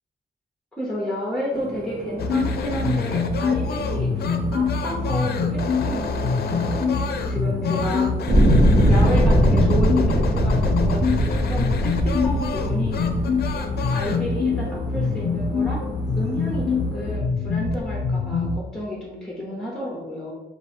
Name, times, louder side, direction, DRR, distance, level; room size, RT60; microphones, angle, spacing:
voice 1, 0.7-4.1 4.5-5.5 5.8-6.1 6.4-7.0 7.3-8.1 8.9-13.0 13.9-15.8 16.1-20.3, equal, 5° left, -3 dB, 0.7 m, -31 dB
sound 1, 1.5-17.2, right 2 dB, 90° right, 0.9 m, -37 dB
sound 2, 2.2-18.6, left 4 dB, 75° left, 0.4 m, -24 dB
sound 3, 8.3-13.5 14.3-14.4, equal, 45° right, 0.8 m, -20 dB
3.5 x 2.5 x 4.3 m, 1.1 s
wide cardioid pair, 165°, 17 cm